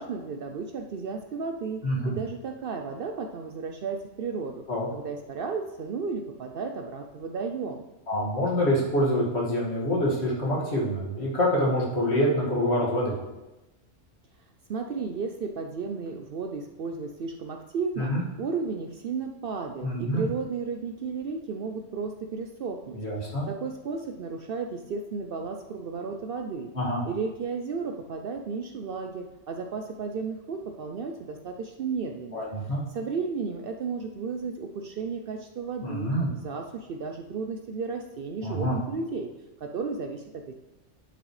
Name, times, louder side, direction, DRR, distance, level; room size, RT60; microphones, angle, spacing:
voice 1, 0.0-4.6 4.9-7.9 14.7-23.0 23.5-26.7 27.0-32.4 32.9-36.1 36.4-39.3 39.6-40.5, right 5 dB, 60° right, 5 dB, 0.6 m, -33 dB
voice 2, 1.8-2.2 4.7-4.9 8.1-13.1 18.0-18.2 19.8-20.3 22.9-23.5 26.7-27.0 32.3-32.8 35.8-36.3 38.4-38.8, equal, 60° left, -5 dB, 2.4 m, -26 dB
11.0 x 6.3 x 3.2 m, 1.0 s
omnidirectional pair, 1.2 m